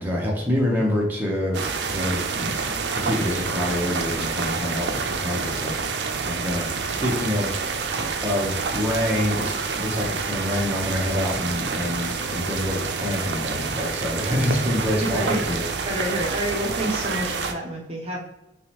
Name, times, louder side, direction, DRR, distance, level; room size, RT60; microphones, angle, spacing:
voice 1, 0.0-2.5 2.9-7.5 8.0-15.7, left 1 dB, 10° right, -3 dB, 0.9 m, -26 dB
sound 1, 1.5-17.5, right 5 dB, 70° right, 0.5 m, -28 dB
voice 2, 15.0-18.2, right 1 dB, 35° right, -3 dB, 0.7 m, -28 dB
3.6 x 3.1 x 3.0 m, 0.90 s
head